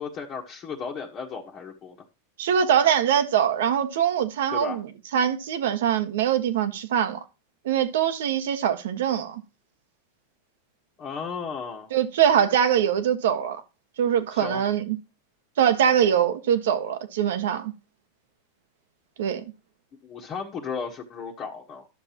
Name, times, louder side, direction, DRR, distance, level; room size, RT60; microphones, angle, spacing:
voice 1, 0.0-2.0 4.5-4.8 11.0-11.9 14.3-14.6 20.0-21.9, left 6 dB, 30° left, 1.4 m, -35 dB
voice 2, 2.4-4.9 5.1-7.2 7.6-9.4 11.9-13.6 14.0-15.0 15.6-17.7 19.2-19.4, right 9 dB, 80° right, 1.5 m, -23 dB
12.5 x 6.7 x 3.0 m
supercardioid pair, 140°, 0 cm